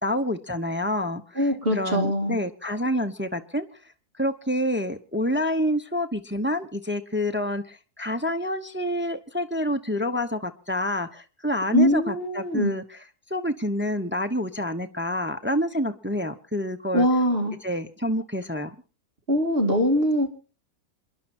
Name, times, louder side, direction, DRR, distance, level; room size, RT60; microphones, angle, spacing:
voice 1, 0.0-3.7 4.2-13.0 13.3-17.1 17.6-18.7, left 1 dB, 10° right, 8 dB, 0.7 m, -28 dB
voice 2, 1.4-2.4 11.7-12.7 16.9-17.5 19.3-20.3, equal, 35° right, 3 dB, 2.7 m, -22 dB
27.5 x 11.0 x 4.3 m, 0.36 s
omnidirectional pair, 1.6 m